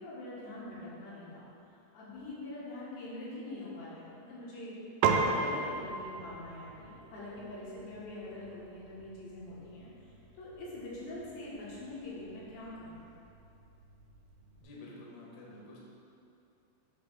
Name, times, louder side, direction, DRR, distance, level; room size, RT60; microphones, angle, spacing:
voice 1, 0.0-1.4 1.9-4.7 5.3-9.9 10.4-13.0, left 1 dB, 85° left, -8 dB, 3.8 m, -44 dB
Piano, 5.0-14.6, right 4 dB, 90° right, 2.1 m, -37 dB
voice 2, 14.6-15.8, left 2 dB, 65° left, -5 dB, 1.7 m, -49 dB
8.1 x 3.1 x 6.2 m, 2.7 s
omnidirectional pair, 4.9 m